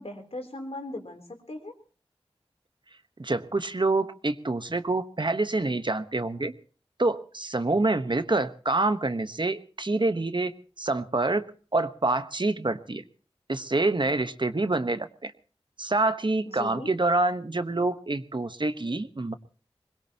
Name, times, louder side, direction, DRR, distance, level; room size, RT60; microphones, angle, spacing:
voice 1, 0.0-1.8 16.5-16.9, left 2 dB, 70° left, 4 dB, 3.4 m, -38 dB
voice 2, 3.2-6.5 7.0-10.5 10.8-11.4 11.7-13.0 13.5-15.3 15.8-19.3, right 2 dB, 50° right, 10 dB, 1.2 m, -26 dB
22.0 x 21.0 x 2.9 m, 0.37 s
wide cardioid pair, 50°, 11 cm